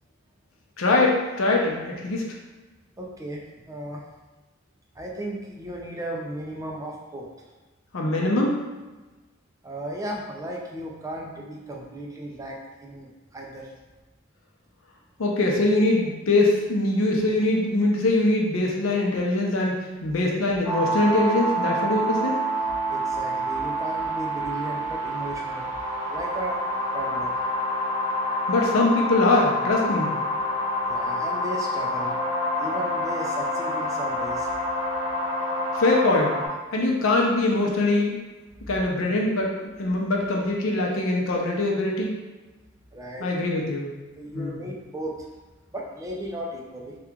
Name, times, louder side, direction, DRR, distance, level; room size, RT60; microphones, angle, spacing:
voice 1, 0.8-2.2 7.9-8.6 15.2-19.8 20.0-22.4 28.5-30.1 35.7-36.3 36.7-38.2 38.7-42.1 43.2-43.9 44.3-44.6, left 2 dB, 85° left, -1 dB, 0.6 m, -22 dB
voice 2, 3.0-4.0 4.9-7.3 9.6-13.7 22.5-22.6 22.9-25.7 26.1-26.6 26.9-27.4 30.8-32.2 32.6-34.5 42.9-43.6 44.1-45.2 45.7-47.0, right 1 dB, 15° right, -1 dB, 0.4 m, -35 dB
sound 1, 20.6-36.5, equal, 20° left, 0.8 m, -27 dB
2.9 x 2.3 x 3.5 m, 1.2 s
head